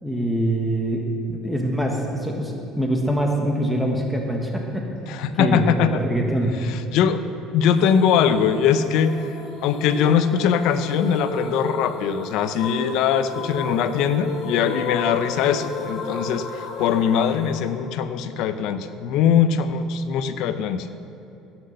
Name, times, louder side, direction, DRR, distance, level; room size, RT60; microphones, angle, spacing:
voice 1, 0.0-6.5, right 1 dB, ahead, 0 dB, 1.6 m, -24 dB
voice 2, 5.1-6.0 6.7-7.2 7.5-9.2 9.6-20.9, left 8 dB, 70° left, 11 dB, 0.7 m, -21 dB
sound 1, 7.8-18.7, left 3 dB, 55° left, 2.7 m, -34 dB
17.0 x 6.2 x 6.6 m, 2.9 s
supercardioid pair, 100°, 0 cm